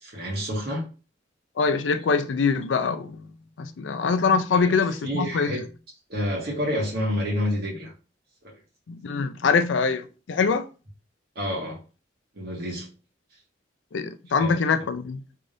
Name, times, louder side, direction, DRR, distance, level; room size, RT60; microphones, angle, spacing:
voice 1, 0.0-0.8 4.5-4.7 5.0-5.6 6.1-7.9 11.4-11.8 12.4-12.9 14.4-14.6, equal, 60° right, 1.8 m, -28 dB
voice 2, 1.6-3.3 3.6-5.5 8.9-10.7 13.9-15.2, left 5 dB, 80° left, 0.4 m, -24 dB
3.7 x 3.4 x 2.6 m
head